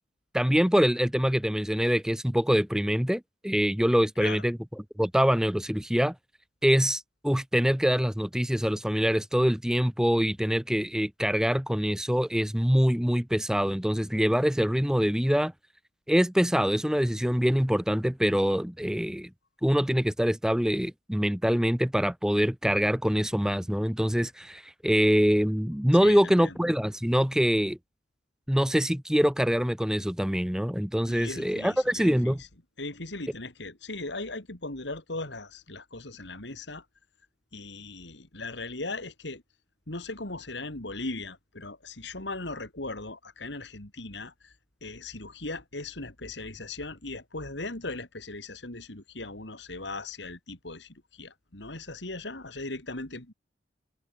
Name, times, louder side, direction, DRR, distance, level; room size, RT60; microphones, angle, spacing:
voice 1, 0.3-4.6 5.0-6.1 6.6-15.5 16.1-19.3 19.6-27.8 28.5-32.4, equal, 5° right, 0.6 m, -24 dB
voice 2, 26.0-26.5 31.1-32.5 32.8-36.8 37.5-39.4 39.9-44.5 44.8-53.3, left 2 dB, 70° left, 3.2 m, -38 dB
head